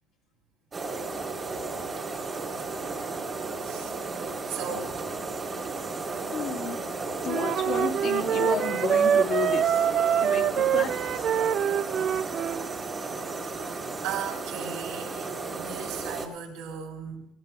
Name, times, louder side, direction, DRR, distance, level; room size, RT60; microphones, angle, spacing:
sound 1, 0.7-16.3, right 3 dB, 25° right, 1.4 m, -34 dB
voice 1, 3.6-4.0 4.5-5.0 13.5-13.7 14.0-17.3, right 7 dB, 85° right, -1 dB, 3.5 m, -37 dB
voice 2, 6.3-6.8 7.2-9.9 10.2-11.3, left 6 dB, 50° left, 1 dB, 1.6 m, -32 dB
Wind instrument woodwind instrument, 7.3-12.6, right 9 dB, 45° right, 0.4 m, -25 dB
18.0 x 17.0 x 2.3 m, 0.78 s
cardioid pair, 125°, 0 cm